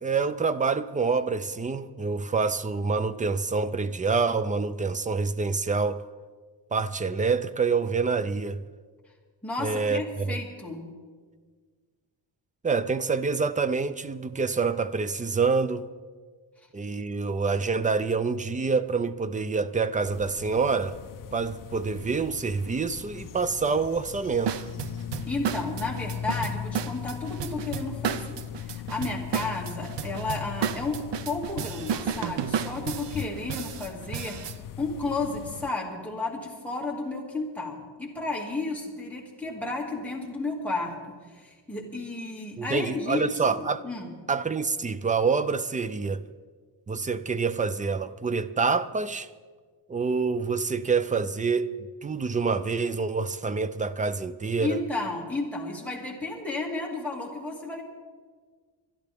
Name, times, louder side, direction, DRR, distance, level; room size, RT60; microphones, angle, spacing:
voice 1, 0.0-6.0 6.7-8.6 9.6-10.4 12.6-15.9 16.7-21.0 21.3-24.6 42.6-43.8 44.3-46.2 46.9-49.3 49.9-51.7 52.0-54.8, right 4 dB, 20° right, 0.4 m, -27 dB
voice 2, 9.4-10.8 25.3-34.4 34.8-44.1 54.6-57.8, left 3 dB, 5° left, 2.3 m, -33 dB
sound 1, 20.0-35.7, left 9 dB, 50° left, 0.4 m, -39 dB
sound 2, 24.5-34.6, right 8 dB, 70° right, 0.7 m, -32 dB
25.0 x 12.0 x 3.5 m
wide cardioid pair, 155°, 44 cm